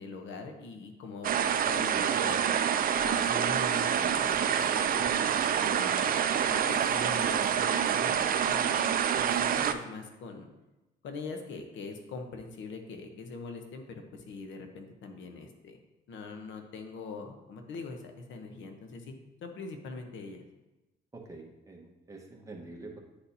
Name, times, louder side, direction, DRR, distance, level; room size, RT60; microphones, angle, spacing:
voice 1, 0.0-2.4 3.0-6.1 6.5-10.5 11.0-15.8 16.1-20.4, left 3 dB, 75° left, 5 dB, 0.9 m, -43 dB
sound 1, 1.2-9.7, right 8 dB, 45° right, 0.4 m, -27 dB
voice 2, 21.1-23.0, right 2 dB, 15° right, 0 dB, 1.2 m, -46 dB
9.7 x 4.2 x 2.7 m, 1.0 s
cardioid pair, 90°, 20 cm